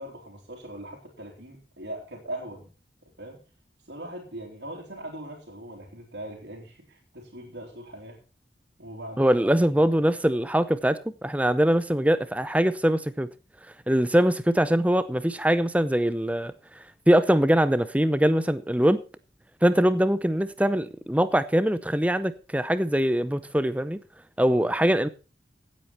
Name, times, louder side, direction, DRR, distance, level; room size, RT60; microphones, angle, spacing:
voice 1, 0.0-2.7 3.2-3.4 3.9-8.2 8.8-9.3 24.5-24.7, right 1 dB, 90° right, 3.3 m, -40 dB
voice 2, 9.2-13.3 13.9-16.5 17.1-19.0 19.6-24.0 24.4-25.1, equal, 10° right, 0.7 m, -22 dB
16.5 x 8.5 x 4.4 m
head